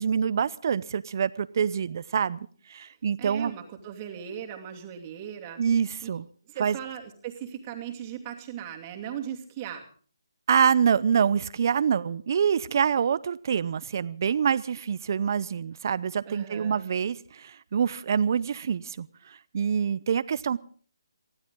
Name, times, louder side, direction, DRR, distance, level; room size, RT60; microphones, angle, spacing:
voice 1, 0.0-2.4 2.7-3.5 5.6-6.3 6.6-6.8 10.5-20.6, right 7 dB, 45° right, 17 dB, 0.7 m, -26 dB
voice 2, 3.2-5.6 6.0-6.1 6.5-9.9 16.2-16.9, right 9 dB, 25° right, 2 dB, 2.6 m, -38 dB
24.0 x 15.5 x 3.8 m, 0.43 s
figure-of-eight pair, 155°, 2 cm